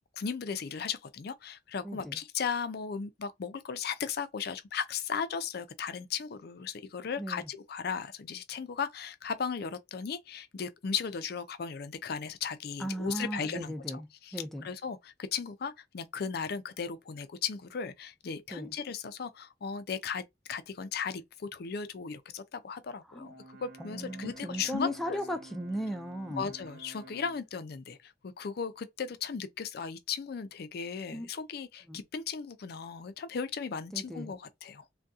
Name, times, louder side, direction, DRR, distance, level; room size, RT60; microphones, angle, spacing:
voice 1, 0.2-20.2 20.5-25.2 26.4-34.9, left 6 dB, 60° left, 0.4 m, -36 dB
voice 2, 1.8-2.2 7.2-7.5 12.8-14.1 14.3-14.7 18.5-18.7 23.1-23.4 23.8-26.5 31.1-31.3 31.9-32.0 33.9-34.3, equal, ahead, 0.4 m, -37 dB
Brass instrument, 23.2-27.5, right 2 dB, 55° right, 1.1 m, -51 dB
2.7 x 2.2 x 3.5 m
head